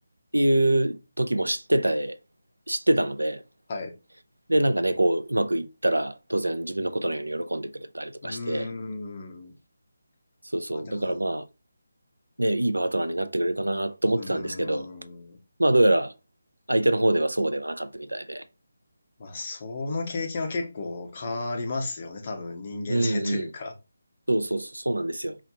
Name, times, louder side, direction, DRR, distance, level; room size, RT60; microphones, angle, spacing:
voice 1, 0.3-2.2 2.7-3.4 4.5-8.7 10.5-11.4 12.4-14.9 15.6-16.1 16.7-18.4 22.9-23.5 24.3-25.4, right 1 dB, 80° right, 0.5 m, -25 dB
voice 2, 8.2-9.5 10.7-11.2 14.1-15.4 19.2-23.7, left 3 dB, 35° left, 1.1 m, -34 dB
4.8 x 3.1 x 2.8 m
figure-of-eight pair, 155°, 0 cm